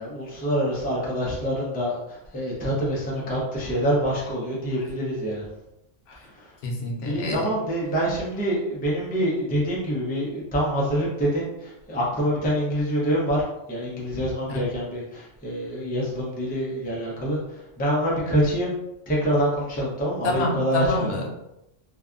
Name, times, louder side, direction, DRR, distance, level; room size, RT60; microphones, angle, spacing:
voice 1, 0.0-5.4 6.4-6.5 7.0-13.4 13.7-17.4 17.8-18.7 19.1-21.1, equal, 15° left, -5 dB, 0.4 m, -26 dB
voice 2, 6.6-7.5 14.5-14.6 20.2-21.3, left 2 dB, 85° left, 1 dB, 0.9 m, -27 dB
2.6 x 2.3 x 2.4 m, 0.90 s
omnidirectional pair, 1.2 m